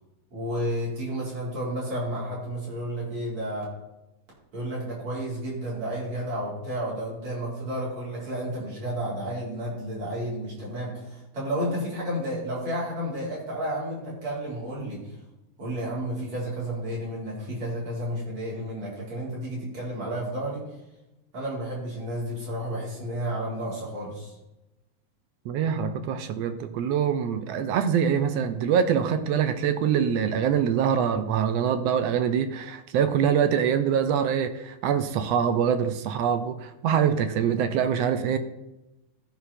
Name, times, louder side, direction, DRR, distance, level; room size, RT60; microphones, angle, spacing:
voice 1, 0.3-3.6 4.5-15.2 15.6-20.7 21.3-24.3, right 1 dB, 60° right, -6 dB, 5.3 m, -31 dB
voice 2, 25.4-38.4, right 8 dB, 75° right, 10 dB, 1.5 m, -24 dB
14.0 x 5.9 x 4.3 m, 0.96 s
omnidirectional pair, 3.4 m